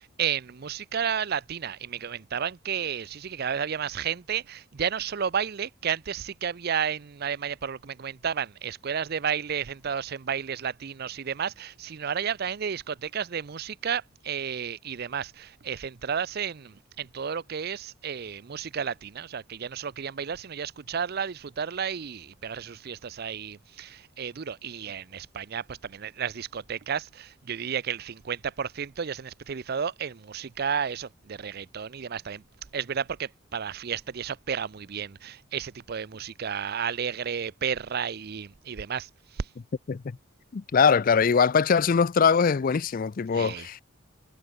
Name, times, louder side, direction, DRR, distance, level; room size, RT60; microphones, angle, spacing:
voice 1, 0.0-32.4 32.7-39.1 39.4-39.5 43.3-43.7, right 7 dB, 50° right, 0.5 m, -32 dB
voice 2, 40.5-43.8, left 6 dB, 45° left, 0.4 m, -22 dB
head